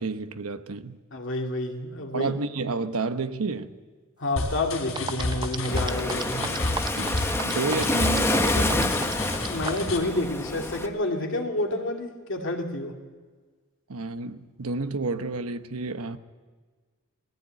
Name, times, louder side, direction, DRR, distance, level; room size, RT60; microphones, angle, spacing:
voice 1, 0.0-1.0 2.1-3.8 7.0-9.0 13.9-16.2, right 3 dB, 90° right, 9 dB, 1.0 m, -30 dB
voice 2, 1.1-2.3 4.2-6.6 9.3-12.9, left 2 dB, 60° left, 2 dB, 2.5 m, -29 dB
sound 1, 4.4-10.0, left 2 dB, 85° left, 3.4 m, -31 dB
sound 2, 4.6-4.7 5.0-9.9, right 4 dB, 20° right, 0.6 m, -33 dB
Waves surf, 5.7-10.9, left 2 dB, 10° left, 0.9 m, -28 dB
20.0 x 14.5 x 8.9 m, 1.5 s
head